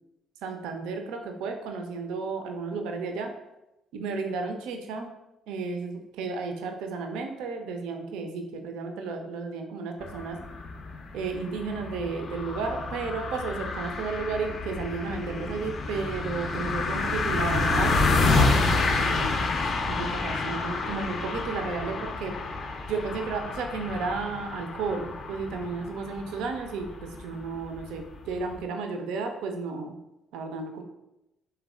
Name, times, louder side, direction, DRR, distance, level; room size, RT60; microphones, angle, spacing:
voice 1, 0.4-3.3 3.9-5.1 5.5-10.4 11.1-19.4 19.9-22.4 22.9-30.0 30.3-30.8, right 4 dB, 65° right, 5 dB, 0.4 m, -33 dB
sound 1, 10.0-28.6, left 3 dB, 45° left, 0.4 m, -29 dB
3.3 x 3.3 x 2.3 m, 0.92 s
figure-of-eight pair, 45°, 0 cm